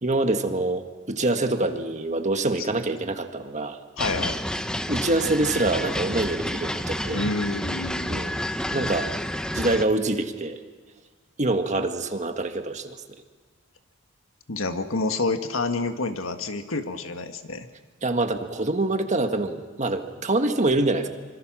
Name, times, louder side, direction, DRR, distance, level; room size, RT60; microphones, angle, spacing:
voice 1, 0.0-3.8 4.9-7.2 8.1-8.4 8.7-9.1 9.5-10.6 11.4-13.0 18.0-21.1, right 2 dB, 35° right, 6 dB, 1.6 m, -25 dB
voice 2, 4.0-4.4 7.1-8.1 14.5-17.7, left 3 dB, 85° left, 7 dB, 1.7 m, -28 dB
sound 1, 4.0-9.8, equal, 5° left, 0.8 m, -29 dB
26.0 x 25.0 x 6.3 m, 1.5 s
head